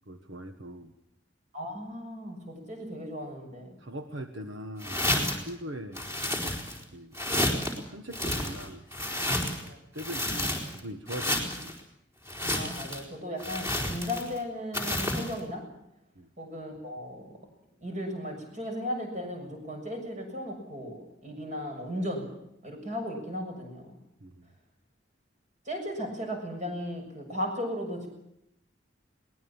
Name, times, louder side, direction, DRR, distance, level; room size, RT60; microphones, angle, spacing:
voice 1, 0.1-0.9 3.8-6.1 6.9-7.2 7.9-9.6 9.9-11.7 16.1-16.3 24.2-24.5, equal, 75° right, 6 dB, 1.5 m, -41 dB
voice 2, 1.5-3.8 9.6-9.8 12.5-15.6 16.4-17.3 17.8-22.3 22.6-24.0 25.7-28.1, equal, 40° right, 3 dB, 7.1 m, -36 dB
sound 1, 4.8-5.5 5.9-6.8 7.1-7.8 8.1-9.7 10.0-10.8 11.1-11.7 12.3-13.0 13.4-14.4 14.7-15.3, left 1 dB, 15° right, 4.3 m, -30 dB
23.0 x 20.0 x 7.3 m, 0.80 s
head